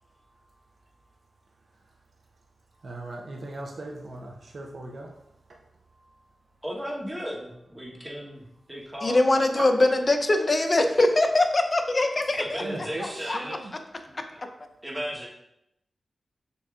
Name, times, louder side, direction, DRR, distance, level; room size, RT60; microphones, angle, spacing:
voice 1, 2.8-5.1 9.6-9.7 12.6-13.7, right 2 dB, 65° right, 0 dB, 0.5 m, -37 dB
voice 2, 6.6-9.2 12.4-13.7 14.1-14.4 14.8-15.3, equal, 15° right, -2 dB, 1.1 m, -35 dB
voice 3, 9.0-12.6 13.3-13.4 14.1-14.2, left 2 dB, 40° left, 6 dB, 0.5 m, -22 dB
6.6 x 2.7 x 2.4 m, 0.81 s
cardioid pair, 65°, 0 cm